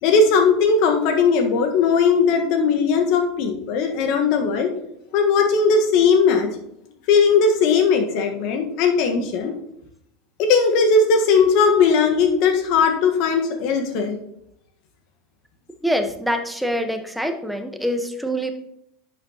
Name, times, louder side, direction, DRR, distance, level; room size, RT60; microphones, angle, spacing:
voice 1, 0.0-4.7 5.1-6.5 7.1-9.5 10.4-14.2, left 5 dB, 60° left, 5 dB, 1.5 m, -18 dB
voice 2, 15.8-18.5, equal, ahead, 6 dB, 1.2 m, -25 dB
11.0 x 7.0 x 3.0 m, 0.79 s
hypercardioid pair, 80°, 0 cm